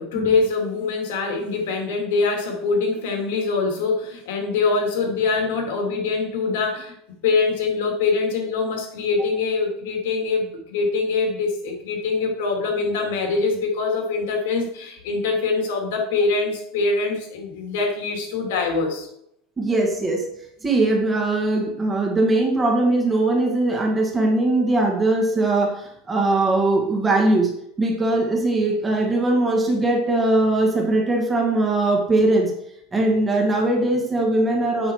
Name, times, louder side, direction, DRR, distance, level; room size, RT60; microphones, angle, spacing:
voice 1, 0.0-19.1, left 4 dB, 85° left, 2 dB, 2.6 m, -24 dB
voice 2, 19.6-20.2 20.6-27.5 27.8-32.5 32.9-34.9, right 2 dB, 10° right, 0 dB, 1.7 m, -20 dB
7.9 x 6.3 x 4.7 m, 0.74 s
supercardioid pair, 175°, 0 cm